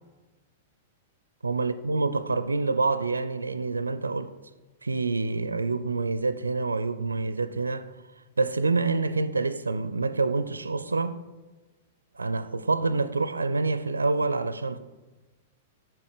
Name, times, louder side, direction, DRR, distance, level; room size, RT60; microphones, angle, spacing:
voice 1, 1.4-4.3 4.8-7.9 8.4-11.2 12.2-14.8, right 3 dB, 75° right, 0.4 m, -27 dB
7.9 x 6.9 x 6.5 m
figure-of-eight pair, 100°, 0 cm